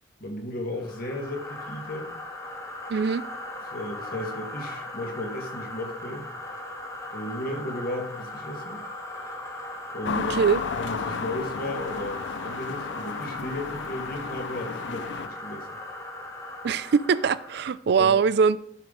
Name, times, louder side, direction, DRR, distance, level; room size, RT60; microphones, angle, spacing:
voice 1, 0.2-2.1 3.7-6.3 7.1-8.9 9.9-10.4 10.7-15.7 18.0-18.2, left 1 dB, 50° left, 2 dB, 1.6 m, -34 dB
sound 1, 0.8-17.8, left 1 dB, 15° left, 1.2 m, -38 dB
voice 2, 2.9-3.2 10.4-10.6 16.6-18.6, right 6 dB, 60° right, 17 dB, 0.4 m, -22 dB
sound 2, 10.0-15.3, left 6 dB, 70° left, 0.4 m, -34 dB
12.0 x 5.2 x 3.8 m, 0.69 s
head